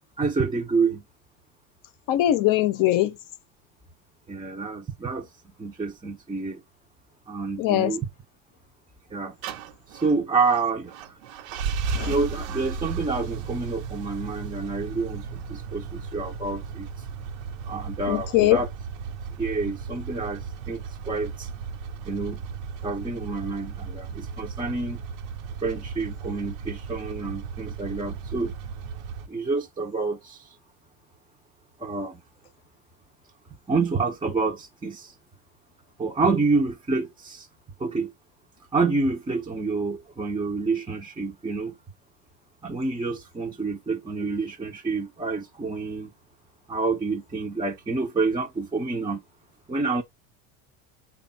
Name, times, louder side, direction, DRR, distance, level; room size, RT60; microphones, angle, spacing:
voice 1, 0.2-1.0 4.3-5.2 5.6-6.6 7.3-8.1 9.1-9.3 10.0-10.9 12.1-16.9 17.7-18.7 19.4-20.4 20.7-20.8 21.1-21.5 22.1-22.4 22.8-25.0 25.6-28.5 29.3-30.4 31.8-32.1 33.7-35.1 36.0-37.4 37.8-38.1 38.7-41.7 42.6-46.1 46.7-49.2 49.7-50.0, right 4 dB, 10° right, 0.5 m, -28 dB
voice 2, 2.1-3.1 7.6-8.0 11.9-12.1 18.1-18.6, left 14 dB, 50° left, 0.7 m, -21 dB
sound 1, 9.4-29.3, right 5 dB, 75° right, 0.8 m, -35 dB
3.4 x 2.3 x 3.9 m
supercardioid pair, 95°, 41 cm